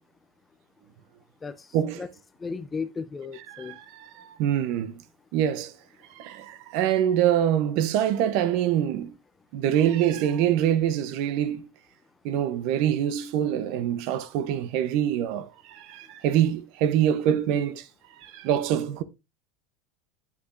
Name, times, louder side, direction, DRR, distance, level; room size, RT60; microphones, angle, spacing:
voice 1, 2.4-3.8, left 5 dB, 10° left, 0.4 m, -34 dB
voice 2, 3.5-5.0 5.3-5.7 6.1-9.1 9.5-11.7 12.2-17.9 18.2-19.0, right 10 dB, 50° right, 0.7 m, -25 dB
8.4 x 8.3 x 2.5 m
supercardioid pair, 175°, 0 cm